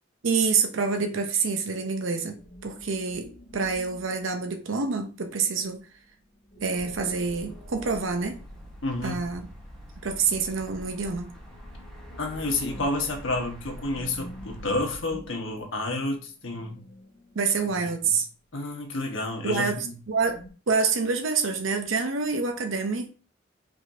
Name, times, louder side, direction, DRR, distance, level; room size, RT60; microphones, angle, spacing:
voice 1, 0.2-5.8 6.6-8.4 9.0-9.5 10.0-11.3 17.4-18.3 19.4-20.4 20.7-23.1, right 5 dB, 85° right, 0.7 m, -27 dB
sound 1, 1.6-4.7 5.5-9.3 10.9-18.0 20.1-20.5, left 1 dB, 45° left, 1.7 m, -49 dB
sound 2, 6.7-15.0, equal, 5° left, 1.2 m, -45 dB
voice 2, 8.8-9.2 12.2-16.9 17.7-18.2 18.5-19.9, left 2 dB, 90° left, 1.3 m, -30 dB
5.2 x 3.6 x 2.7 m
head